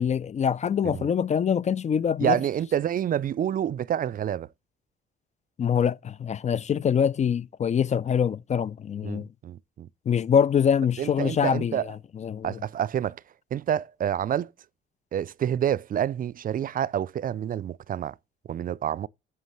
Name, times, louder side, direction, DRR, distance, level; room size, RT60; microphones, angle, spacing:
voice 1, 0.0-2.4 5.6-9.3 10.1-11.8 12.2-12.5, left 7 dB, 35° left, 0.4 m, -24 dB
voice 2, 2.2-4.5 9.0-9.9 11.0-11.9 12.4-13.2 13.5-14.5 15.1-18.2 18.5-19.1, right 10 dB, 45° right, 0.4 m, -28 dB
9.3 x 6.3 x 3.0 m
cardioid pair, 90°, 20 cm